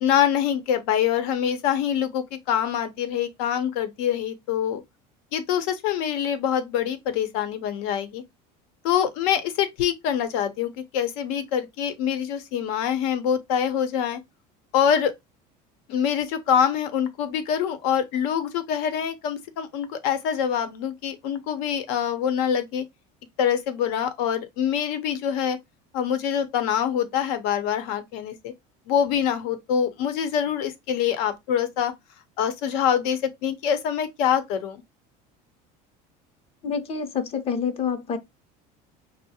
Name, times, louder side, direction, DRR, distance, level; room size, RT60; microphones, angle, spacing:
voice 1, 0.0-4.8 5.3-8.2 8.8-14.2 14.7-15.1 15.9-22.8 23.4-25.6 25.9-28.5 28.9-31.9 32.4-34.8, left 9 dB, 80° left, 0.7 m, -25 dB
voice 2, 36.6-38.2, left 6 dB, 30° left, 0.6 m, -27 dB
5.5 x 2.0 x 2.7 m
cardioid pair, 140°, 19 cm